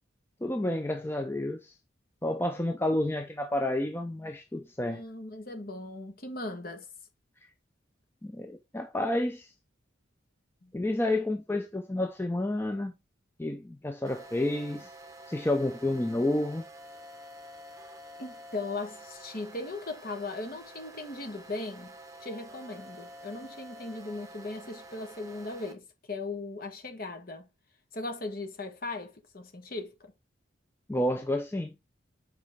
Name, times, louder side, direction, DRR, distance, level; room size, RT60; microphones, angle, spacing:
voice 1, 0.4-1.7 2.2-5.0 8.2-9.5 10.7-12.9 13.4-14.9 15.3-16.6 30.9-31.7, left 1 dB, 10° left, 0.5 m, -30 dB
voice 2, 4.8-6.9 10.6-10.7 18.2-21.9 22.2-27.5 27.9-30.1, left 2 dB, 45° left, 1.3 m, -38 dB
sound 1, 14.1-25.7, right 1 dB, 15° right, 0.9 m, -49 dB
7.2 x 4.6 x 3.6 m
head